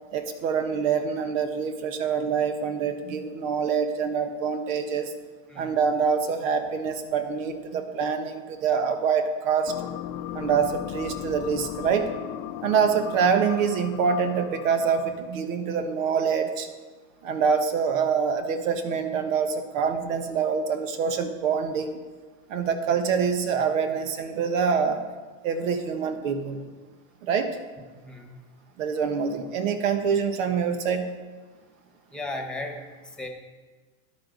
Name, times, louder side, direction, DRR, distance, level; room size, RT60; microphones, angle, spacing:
voice 1, 0.1-5.1 5.6-9.7 10.3-12.1 12.6-16.7 17.2-22.0 22.5-25.0 25.4-26.6 27.2-27.5 28.8-31.1, right 6 dB, 70° right, 7 dB, 1.6 m, -25 dB
sound 1, 9.7-15.3, left 11 dB, 40° left, 0.6 m, -37 dB
voice 2, 27.9-28.4 32.1-33.3, left 2 dB, ahead, 3 dB, 1.4 m, -36 dB
13.5 x 10.5 x 4.0 m, 1.4 s
supercardioid pair, 140°, 40 cm